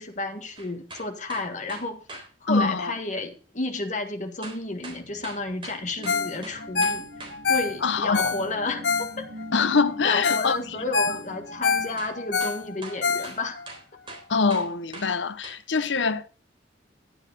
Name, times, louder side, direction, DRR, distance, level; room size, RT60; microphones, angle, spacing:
voice 1, 0.0-7.1 7.5-9.3 10.0-13.6, left 2 dB, 40° left, 1.7 m, -32 dB
sound 1, 0.6-2.3 4.4-7.4 12.0-12.1 12.4-15.1 15.4-15.6, right 3 dB, 30° right, 3.7 m, -41 dB
voice 2, 2.5-2.9 7.8-8.2 9.5-10.6 14.3-16.3, left 4 dB, 80° left, 0.8 m, -24 dB
sound 2, 4.7-13.8, left 1 dB, 75° right, 1.4 m, -45 dB
Ringtone, 6.1-6.4 6.6-9.5 9.9-10.0 10.2-10.5 10.8-13.7 14.1-14.2, left 5 dB, 65° left, 1.2 m, -26 dB
12.0 x 9.6 x 4.1 m
head